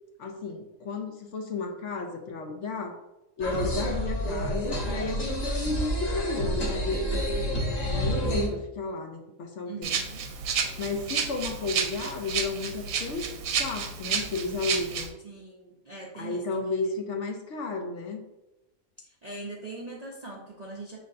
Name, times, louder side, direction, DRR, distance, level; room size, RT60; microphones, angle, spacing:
voice 1, 0.2-3.0 3.4-10.0 10.8-13.3 13.6-15.1 16.1-18.2, left 3 dB, 65° left, 4 dB, 0.8 m, -33 dB
sound 1, 3.4-8.5, equal, 35° left, 0.8 m, -29 dB
voice 2, 3.5-3.8 9.7-10.2 10.6-10.9 15.2-16.7 19.0-21.0, right 3 dB, 50° right, -4 dB, 0.5 m, -42 dB
Rattle (instrument), 9.8-15.1, right 6 dB, 80° right, 1.0 m, -31 dB
6.4 x 3.2 x 2.5 m, 0.96 s
omnidirectional pair, 1.5 m